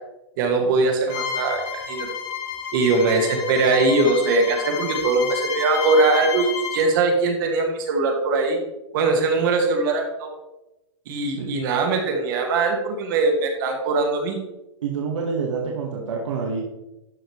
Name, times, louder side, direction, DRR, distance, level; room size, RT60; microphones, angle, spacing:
voice 1, 0.4-2.1 2.7-8.6 8.9-10.3 11.1-14.4, right 3 dB, 45° right, 2 dB, 1.5 m, -21 dB
Bowed string instrument, 1.1-6.9, left 7 dB, 40° left, 2.3 m, -30 dB
voice 2, 14.8-16.6, right 5 dB, 75° right, -1 dB, 1.7 m, -27 dB
12.5 x 5.1 x 3.2 m, 0.95 s
hypercardioid pair, 155°, 16 cm